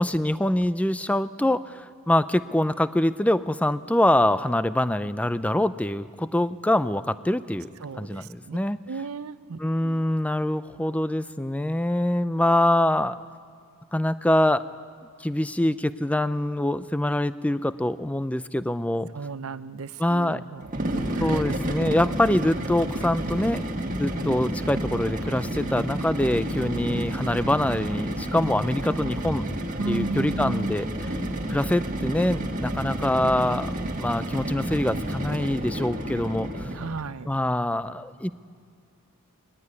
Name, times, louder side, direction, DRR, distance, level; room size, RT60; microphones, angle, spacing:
voice 1, 0.0-7.7 8.0-8.8 9.6-13.2 13.9-14.6 15.2-19.1 20.0-20.4 21.2-23.6 24.0-29.5 29.9-30.9 31.5-33.7 34.0-36.7 37.3-38.3, left 1 dB, 5° left, 14 dB, 0.4 m, -24 dB
voice 2, 7.8-8.6 8.9-10.1 19.1-21.4 29.8-30.8 36.7-37.3, right 3 dB, 70° right, 14 dB, 0.6 m, -35 dB
sound 1, 20.6-37.0, right 1 dB, 35° right, 1.8 m, -30 dB
21.0 x 15.0 x 9.6 m, 2.3 s
head